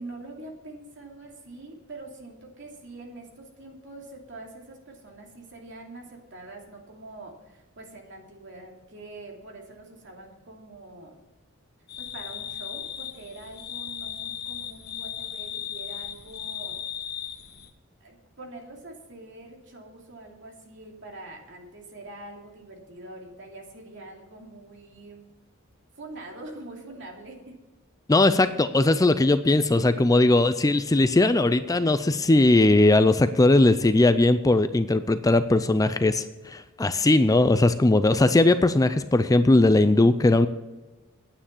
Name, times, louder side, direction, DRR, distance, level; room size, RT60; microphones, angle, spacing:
voice 1, 0.0-11.2 12.0-16.8 18.0-25.2 25.9-27.5 29.7-30.3, right 2 dB, 60° right, 0 dB, 2.8 m, -44 dB
sound 1, 11.9-17.7, left 9 dB, 50° left, 1.0 m, -36 dB
voice 2, 28.1-40.5, left 2 dB, 15° left, 11 dB, 0.4 m, -19 dB
9.8 x 9.0 x 7.2 m, 1.1 s
head